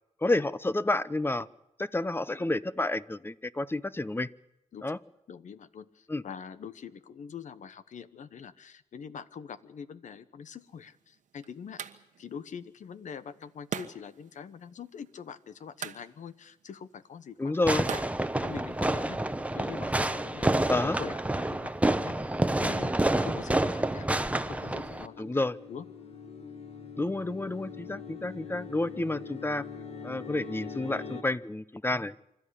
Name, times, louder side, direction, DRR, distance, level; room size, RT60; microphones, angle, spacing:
voice 1, 0.2-1.5 1.8-4.3 4.8-5.0 6.1-6.2 17.4-17.9 20.7-21.0 25.2-25.6 27.0-29.7 30.0-32.2, left 2 dB, 15° left, 16 dB, 0.7 m, -30 dB
voice 2, 5.3-11.8 12.2-18.0 18.4-19.2 19.5-25.9, left 7 dB, 80° left, 13 dB, 1.1 m, -44 dB
sound 1, 10.6-19.1, right 8 dB, 85° right, 1.2 m, -45 dB
Fireworks, 17.7-25.1, right 1 dB, 10° right, 0.9 m, -28 dB
sound 2, 23.9-31.2, left 6 dB, 55° left, 1.9 m, -43 dB
26.5 x 13.0 x 10.0 m, 0.87 s
cardioid pair, 80°, 13 cm